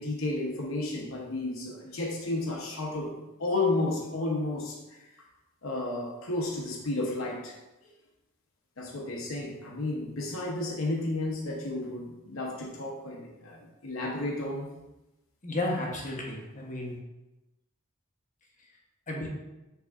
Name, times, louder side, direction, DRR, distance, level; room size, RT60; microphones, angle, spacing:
voice 1, 0.0-3.1 3.4-5.0 5.6-7.5 8.8-14.7, left 2 dB, 70° left, -2 dB, 0.8 m, -32 dB
voice 2, 15.4-17.0 19.1-19.3, left 1 dB, 40° left, -1 dB, 0.9 m, -33 dB
6.0 x 3.4 x 2.4 m, 1.0 s
head